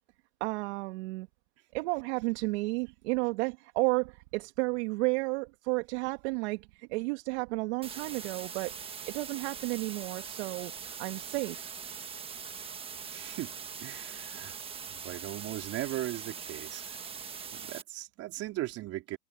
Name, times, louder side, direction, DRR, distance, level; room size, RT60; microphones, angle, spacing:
voice 1, 0.4-1.3 1.7-11.7, right 27 dB, 50° right, 1.9 m, -32 dB
sound 1, 7.8-17.8, right 6 dB, 15° right, 1.3 m, -42 dB
voice 2, 13.1-13.5 13.8-14.6 14.9-16.9 17.5-19.2, right 16 dB, 35° right, 3.8 m, -38 dB
supercardioid pair, 140°, 43 cm